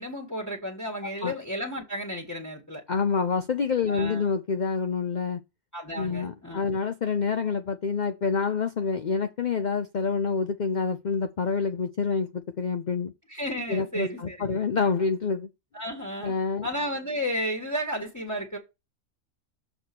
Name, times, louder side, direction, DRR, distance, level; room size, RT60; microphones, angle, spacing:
voice 1, 0.0-2.8 3.9-4.3 5.7-6.7 13.3-14.6 15.7-16.4 16.6-18.6, equal, 15° left, 1.6 m, -33 dB
voice 2, 2.9-5.4 6.0-13.1 13.7-15.5 16.2-16.7, left 5 dB, 45° left, 0.6 m, -27 dB
7.0 x 4.2 x 6.0 m
omnidirectional pair, 1.4 m